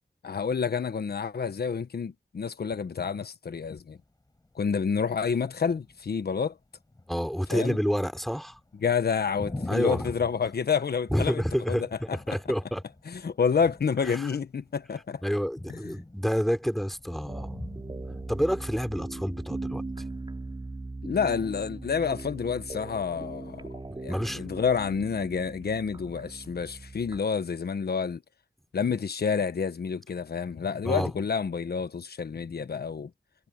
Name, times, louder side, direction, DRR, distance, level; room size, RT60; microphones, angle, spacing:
voice 1, 0.2-4.0 4.5-6.6 7.5-7.8 8.8-11.4 11.7-12.2 13.1-15.2 15.7-15.9 21.0-23.7 24.0-28.2 28.7-33.1, left 6 dB, 75° left, 1.3 m, -29 dB
sound 1, 3.9-20.2, left 2 dB, 25° left, 6.3 m, -46 dB
voice 2, 7.1-8.6 9.7-10.1 11.1-12.8 14.0-14.3 15.2-17.6 18.1-19.8 24.1-24.5 30.8-31.1, equal, ahead, 3.4 m, -29 dB
sound 2, 17.3-27.2, right 2 dB, 30° right, 3.6 m, -39 dB
wide cardioid pair, 120°, 16 cm